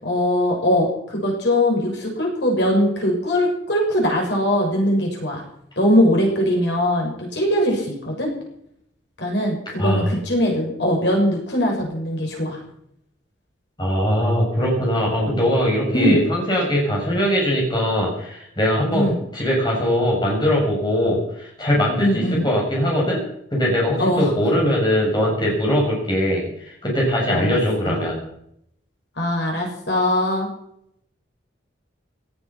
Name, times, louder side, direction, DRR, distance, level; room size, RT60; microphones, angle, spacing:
voice 1, 0.0-5.4 5.8-8.3 9.2-12.6 15.9-16.2 18.9-19.2 22.0-22.5 24.0-24.3 27.3-27.6 27.9-28.0 29.2-30.5, left 1 dB, 65° left, -1 dB, 7.0 m, -21 dB
voice 2, 9.8-10.1 13.8-23.2 23.5-28.2, equal, 25° left, -3 dB, 6.4 m, -21 dB
17.5 x 13.5 x 6.0 m, 0.73 s
head